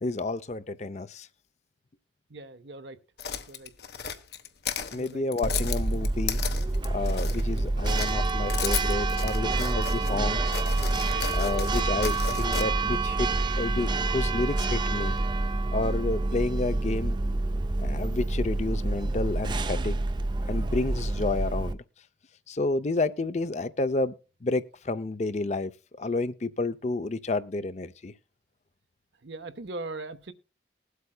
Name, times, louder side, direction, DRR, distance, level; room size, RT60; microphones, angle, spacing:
voice 1, 0.0-1.3 4.9-6.4 6.9-10.6 11.3-13.3 13.6-15.1 15.7-17.2 17.8-20.0 20.5-21.8 22.5-24.1 24.4-25.7 26.0-28.1, left 2 dB, 40° left, 0.5 m, -30 dB
voice 2, 2.3-3.0 3.5-3.7 4.9-5.2 10.1-10.3 11.1-11.5 29.2-30.3, right 2 dB, 75° right, 1.0 m, -40 dB
sound 1, 3.2-7.6 7.9-10.1 10.5-12.6, left 8 dB, 60° left, 1.0 m, -34 dB
Church bell, 5.4-21.7, right 2 dB, 25° right, 0.5 m, -27 dB
20.5 x 8.1 x 2.2 m
head